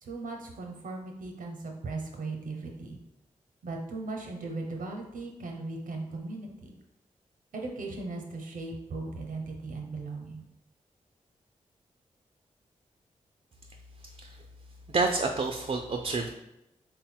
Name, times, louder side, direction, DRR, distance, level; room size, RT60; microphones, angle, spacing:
voice 1, 0.0-3.0 3.6-6.7 7.5-10.5, right 3 dB, 75° right, 2 dB, 0.7 m, -38 dB
voice 2, 14.9-16.3, right 3 dB, 45° right, 3 dB, 0.4 m, -28 dB
3.4 x 2.2 x 4.3 m, 0.92 s
supercardioid pair, 40°, 14 cm